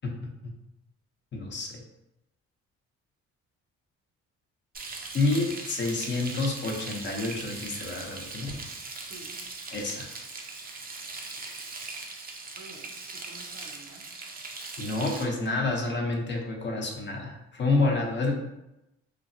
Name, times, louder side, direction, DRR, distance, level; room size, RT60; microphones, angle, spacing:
voice 1, 1.3-1.8 5.1-8.5 9.7-10.1 14.8-18.3, left 3 dB, 35° left, 0 dB, 0.6 m, -28 dB
Frying (food), 4.7-15.2, right 3 dB, 30° right, 0.5 m, -40 dB
voice 2, 8.7-9.5 12.6-14.1 17.9-18.3, right 2 dB, 75° right, 1 dB, 0.8 m, -50 dB
3.2 x 2.0 x 2.5 m, 0.92 s
cardioid pair, 90°, 30 cm